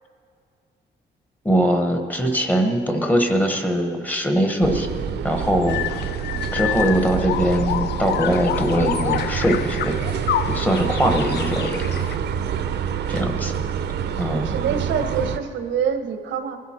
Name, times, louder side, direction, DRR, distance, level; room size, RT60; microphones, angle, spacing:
voice 1, 1.4-4.9 5.2-6.2 6.5-9.9 10.5-11.8 13.1-13.6 14.2-14.5, equal, 10° left, 4 dB, 1.0 m, -21 dB
sound 1, 4.6-15.4, right 8 dB, 65° right, 0.8 m, -27 dB
sound 2, 5.7-12.2, left 12 dB, 60° left, 0.4 m, -28 dB
voice 2, 10.8-11.2 14.4-16.6, right 7 dB, 85° right, 8 dB, 1.1 m, -26 dB
20.5 x 12.0 x 4.3 m, 2.3 s
cardioid pair, 170°, 19 cm